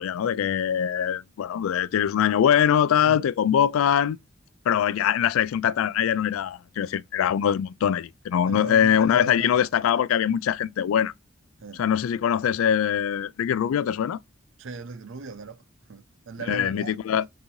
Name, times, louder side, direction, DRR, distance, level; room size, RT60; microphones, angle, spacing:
voice 1, 0.0-4.2 4.7-11.1 11.7-14.2 16.4-17.3, left 9 dB, 85° left, 0.3 m, -23 dB
voice 2, 8.5-9.7 11.6-11.8 14.6-15.6 15.9-16.9, right 4 dB, 70° right, 0.5 m, -38 dB
5.9 x 2.7 x 3.1 m
head